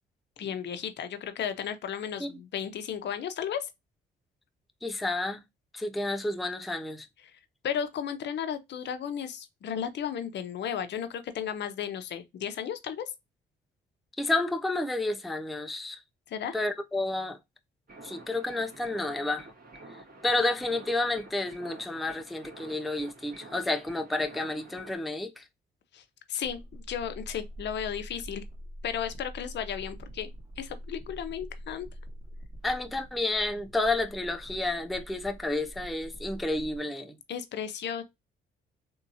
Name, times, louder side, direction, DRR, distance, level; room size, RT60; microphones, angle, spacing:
voice 1, 0.4-3.7 7.6-13.1 16.3-16.6 25.9-26.0 26.3-28.4 28.8-30.3 30.6-31.9 37.3-38.0, left 8 dB, 60° left, 0.7 m, -34 dB
voice 2, 4.8-5.4 5.7-7.1 14.2-16.0 16.5-17.4 18.0-19.5 20.2-25.4 32.6-37.2, left 2 dB, ahead, 0.4 m, -30 dB
sound 1, 17.9-24.9, right 2 dB, 50° right, 1.8 m, -49 dB
sound 2, 26.4-36.8, equal, 25° right, 1.6 m, -44 dB
3.5 x 2.8 x 2.7 m
cardioid pair, 90°, 20 cm